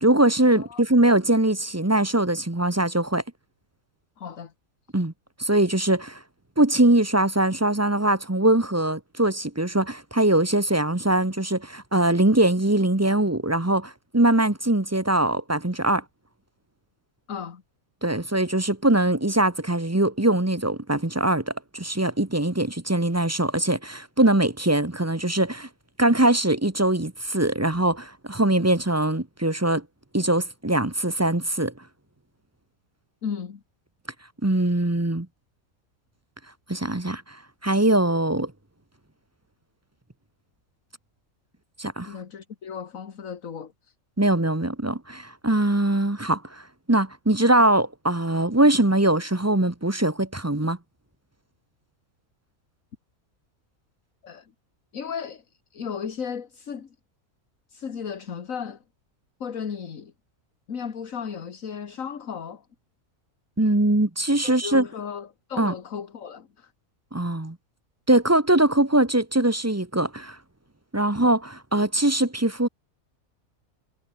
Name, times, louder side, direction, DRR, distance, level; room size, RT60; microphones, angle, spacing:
voice 1, 0.0-3.2 4.9-5.1 5.4-6.2 6.6-16.0 18.0-25.7 26.0-29.8 30.1-31.7 34.4-35.3 36.7-37.2 37.6-38.5 41.8-42.1 44.2-46.6 46.9-50.8 63.6-64.8 65.6-65.7 67.1-67.6 68.1-70.4 70.9-72.7, right 1 dB, 10° right, 1.2 m, -22 dB
voice 2, 0.5-0.8 4.2-4.5 17.3-17.6 33.2-33.6 42.1-43.7 54.2-54.5 54.9-55.4 55.7-56.9 57.7-58.8 59.4-60.1 60.7-62.6 64.4-66.7, left 7 dB, 70° left, 1.9 m, -35 dB
omnidirectional pair, 1.5 m